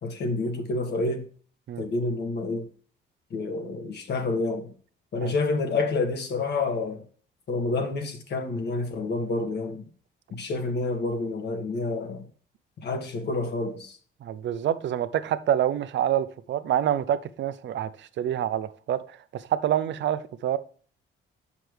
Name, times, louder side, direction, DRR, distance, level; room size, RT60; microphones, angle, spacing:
voice 1, 0.0-1.2 1.8-2.7 3.3-4.7 5.1-7.0 7.5-9.8 10.3-12.2 12.8-14.0, left 3 dB, 60° left, 1.7 m, -28 dB
voice 2, 14.2-20.6, right 11 dB, 65° right, 0.7 m, -27 dB
7.7 x 5.9 x 3.3 m
cardioid pair, 90°, 20 cm